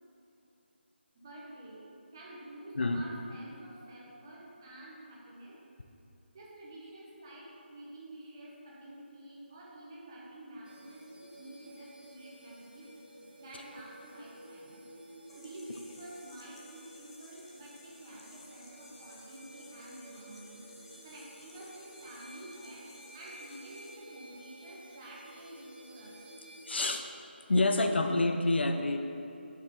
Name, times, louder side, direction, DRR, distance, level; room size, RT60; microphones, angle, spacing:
voice 1, 1.1-1.9 2.1-5.6 6.3-12.9 13.4-14.8 15.3-20.6 21.0-26.2, right 1 dB, 20° right, -5 dB, 1.1 m, -49 dB
sound 1, 10.6-26.8, right 1 dB, 50° right, 0.9 m, -53 dB
sound 2, 15.3-24.0, left 3 dB, 25° left, 0.7 m, -57 dB
voice 2, 26.7-27.1 27.5-29.0, left 2 dB, 65° left, 5 dB, 0.6 m, -27 dB
7.3 x 5.6 x 3.9 m, 3.0 s
figure-of-eight pair, 170°, 6 cm